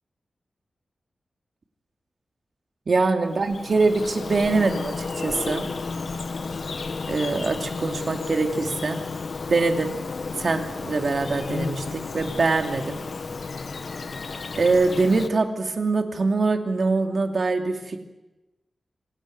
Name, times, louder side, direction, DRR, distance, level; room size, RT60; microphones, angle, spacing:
voice 1, 2.9-5.7 7.1-9.0 9.5-9.9 10.4-13.0 14.5-18.0, right 3 dB, 50° right, 5 dB, 2.7 m, -23 dB
Bird vocalization bird call bird song, 3.2-15.3, left 4 dB, 55° left, 1.3 m, -32 dB
25.5 x 16.5 x 9.4 m, 1.0 s
wide cardioid pair, 140°, 0 cm